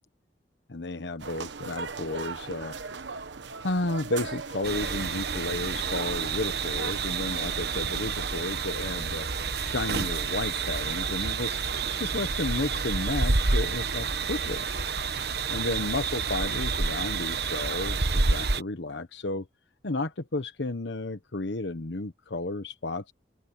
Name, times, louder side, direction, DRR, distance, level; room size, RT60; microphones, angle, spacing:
voice 1, 0.7-2.8 3.6-9.3 9.6-11.7 12.0-14.6 15.5-19.5 19.8-23.1, left 2 dB, 75° left, 1.1 m, -32 dB
sound 1, 1.2-8.7, right 4 dB, 85° right, 1.1 m, -39 dB
sound 2, 4.6-18.6, right 4 dB, 60° right, 1.2 m, -29 dB
open air
head